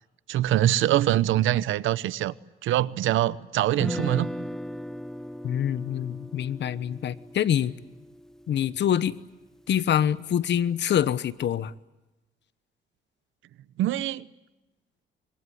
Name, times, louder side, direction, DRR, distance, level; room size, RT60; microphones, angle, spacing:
voice 1, 0.3-2.3 2.6-4.3 13.8-14.3, right 13 dB, 85° right, 0.9 m, -24 dB
Guitar, 3.7-9.8, equal, 5° left, 1.2 m, -38 dB
voice 2, 5.4-7.7 8.5-9.2 9.7-11.7, left 10 dB, 60° left, 1.1 m, -25 dB
25.5 x 22.5 x 9.5 m
cardioid pair, 90°, 20 cm